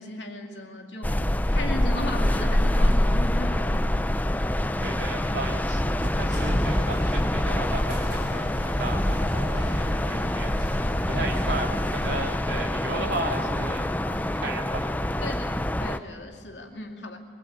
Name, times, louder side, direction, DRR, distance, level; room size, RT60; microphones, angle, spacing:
voice 1, 0.0-3.9 14.1-14.2 15.2-17.2, left 1 dB, 85° left, 3 dB, 2.4 m, -36 dB
sound 1, 1.0-16.0, left 1 dB, 10° left, 0.5 m, -25 dB
voice 2, 4.8-14.9, right 2 dB, 65° right, 2 dB, 2.7 m, -35 dB
sound 2, 5.9-8.3, equal, 50° right, 2.1 m, -37 dB
sound 3, 6.3-12.2, equal, 25° left, 6.9 m, -39 dB
22.0 x 20.5 x 8.7 m, 2.2 s
head